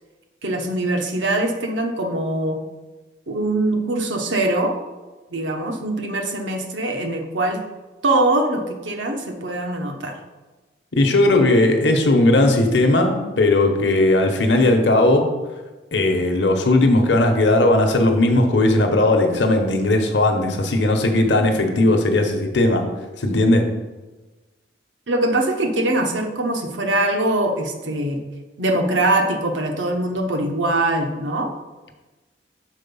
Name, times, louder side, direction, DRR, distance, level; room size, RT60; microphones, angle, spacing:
voice 1, 0.4-2.6 3.3-4.7 5.3-7.6 8.0-10.2 25.1-28.2 28.6-31.5, right 1 dB, 85° right, 3 dB, 1.0 m, -22 dB
voice 2, 10.9-15.3 15.9-22.8 23.2-23.7, left 2 dB, 70° left, 3 dB, 0.8 m, -17 dB
6.3 x 4.2 x 5.4 m, 1.2 s
head